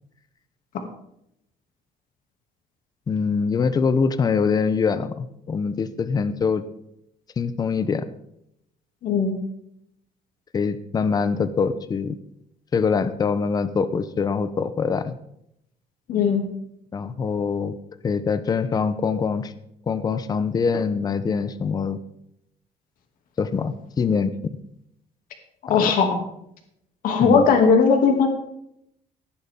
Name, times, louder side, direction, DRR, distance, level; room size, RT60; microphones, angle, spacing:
voice 1, 3.1-6.6 7.4-8.1 10.5-12.2 12.7-15.1 16.9-17.7 18.0-19.5 19.9-22.0 23.4-24.6 25.7-25.9 27.2-27.5, left 5 dB, 25° left, 12 dB, 0.7 m, -24 dB
voice 2, 9.0-9.4 16.1-16.4 25.7-26.1 27.0-28.3, left 5 dB, 65° left, 3 dB, 2.6 m, -18 dB
15.5 x 11.0 x 3.7 m, 0.76 s
cardioid pair, 160°, 16 cm